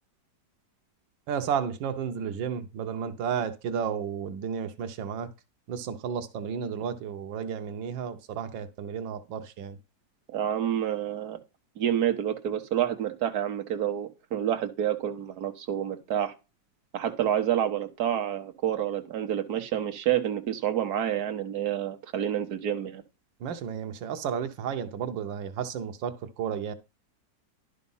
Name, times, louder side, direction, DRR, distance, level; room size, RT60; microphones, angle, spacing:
voice 1, 1.3-5.3 5.7-9.8 23.4-26.7, right 7 dB, 90° right, 1.5 m, -32 dB
voice 2, 10.3-11.4 11.8-16.3 16.9-23.0, right 10 dB, 60° right, 1.6 m, -28 dB
11.0 x 4.1 x 5.5 m
omnidirectional pair, 2.0 m